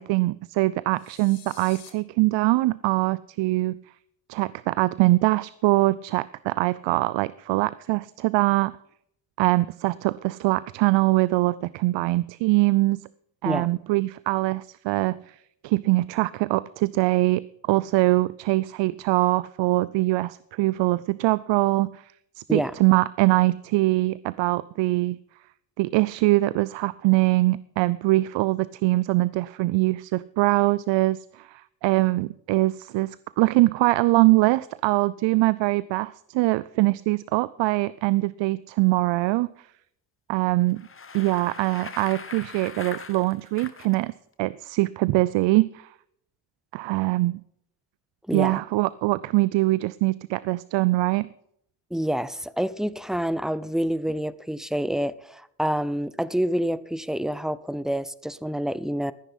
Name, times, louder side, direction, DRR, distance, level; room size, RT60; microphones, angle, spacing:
voice 1, 0.0-3.8 4.3-8.7 9.4-13.0 13.4-15.4 15.6-22.1 22.5-25.2 25.8-39.7 40.3-40.8 41.1-44.1 44.4-45.9 46.7-47.4 48.3-51.3, right 20 dB, 65° right, 19 dB, 0.6 m, -23 dB
sound 1, 0.9-1.9, left 10 dB, 75° left, 2.4 m, -47 dB
Bicycle, 40.7-44.0, left 5 dB, 25° left, 1.6 m, -40 dB
voice 2, 48.3-48.6 51.9-59.1, equal, ahead, 17 dB, 0.8 m, -27 dB
14.0 x 10.0 x 5.7 m, 0.70 s
hypercardioid pair, 60°, 48 cm